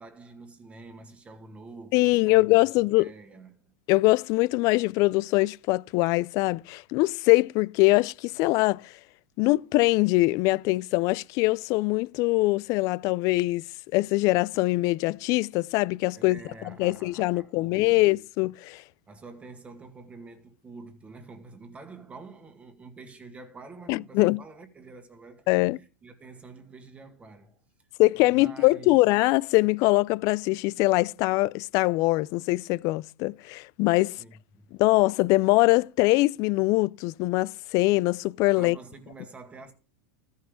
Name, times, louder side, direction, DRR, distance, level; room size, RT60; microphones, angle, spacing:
voice 1, 0.0-2.6 3.0-3.7 16.1-18.0 19.1-27.9 28.1-29.1 34.2-34.7 38.6-39.7, right 3 dB, 15° right, 2.0 m, -47 dB
voice 2, 1.9-3.1 3.9-8.9 9.4-16.4 16.8-18.8 23.9-24.4 25.5-25.8 28.0-34.2 34.8-38.8, left 22 dB, 45° left, 0.4 m, -23 dB
14.0 x 5.6 x 5.1 m
hypercardioid pair, 120°, 8 cm